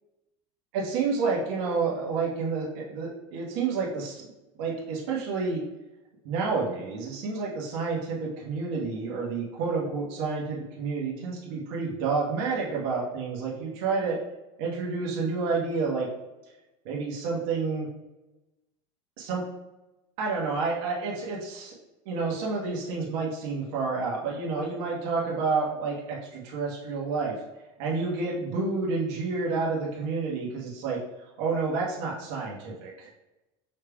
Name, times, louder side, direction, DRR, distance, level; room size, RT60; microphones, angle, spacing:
voice 1, 0.7-4.2 4.6-5.6 6.2-14.2 14.6-16.1 16.8-17.9 19.2-19.4 20.2-21.7 22.0-27.3 27.8-31.0 31.4-33.1, right 4 dB, 65° right, -4 dB, 1.3 m, -29 dB
5.5 x 3.5 x 2.3 m, 1.0 s
supercardioid pair, 145°, 15 cm